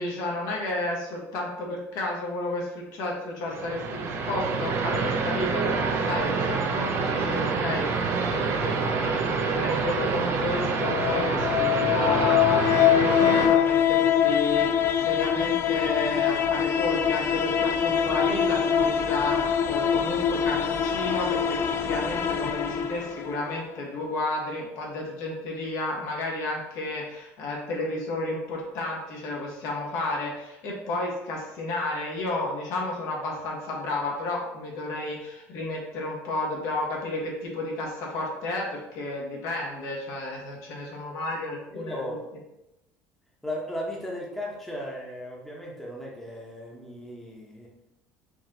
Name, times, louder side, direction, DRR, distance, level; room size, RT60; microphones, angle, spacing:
voice 1, 0.0-42.1, left 2 dB, 70° left, -2 dB, 1.5 m, -32 dB
sound 1, 3.5-13.5, right 4 dB, 45° right, 0.6 m, -27 dB
sound 2, 10.6-23.6, left 9 dB, 40° left, 0.4 m, -24 dB
voice 2, 41.7-42.2 43.4-47.7, left 1 dB, 5° left, -3 dB, 1.0 m, -36 dB
4.6 x 2.9 x 3.8 m, 0.89 s
cardioid pair, 120°, 6 cm